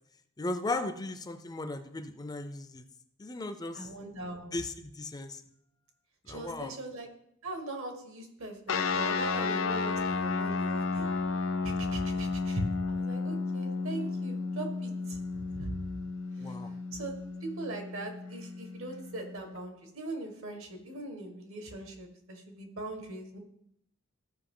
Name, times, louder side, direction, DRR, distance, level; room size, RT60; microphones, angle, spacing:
voice 1, 0.4-2.8 3.2-3.9 4.5-5.4 6.3-6.8 16.4-16.8, left 2 dB, 20° left, 9 dB, 0.5 m, -36 dB
voice 2, 3.7-4.5 6.3-7.1 7.4-11.1 11.6-15.7 16.4-16.6 16.9-17.1 17.4-23.4, right 2 dB, 70° right, 4 dB, 1.6 m, -40 dB
sound 1, 8.7-19.6, left 4 dB, 70° left, 0.6 m, -33 dB
13.5 x 5.3 x 3.8 m, 0.74 s
head